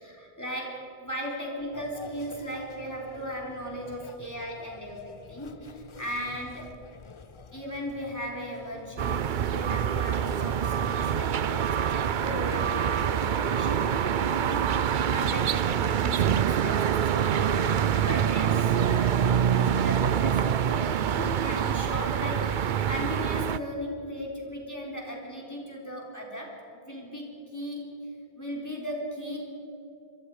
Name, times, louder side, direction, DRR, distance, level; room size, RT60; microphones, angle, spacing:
voice 1, 0.0-6.7 7.5-28.0 28.3-29.5, equal, 15° left, -2 dB, 4.0 m, -37 dB
sound 1, 1.7-18.3, left 5 dB, 35° left, 0.5 m, -45 dB
sound 2, 9.0-23.6, right 9 dB, 55° right, 0.7 m, -25 dB
27.0 x 23.5 x 4.9 m, 2.9 s
omnidirectional pair, 1.0 m